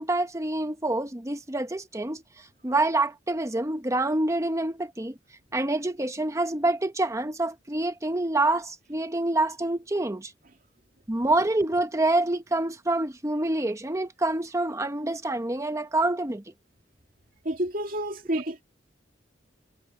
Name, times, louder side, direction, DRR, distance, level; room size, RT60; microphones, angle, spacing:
voice 1, 0.0-2.2 2.6-5.1 5.5-10.3 11.1-16.4, right 2 dB, 15° right, 1.0 m, -26 dB
voice 2, 17.4-18.6, right 1 dB, 55° right, 2.3 m, -29 dB
head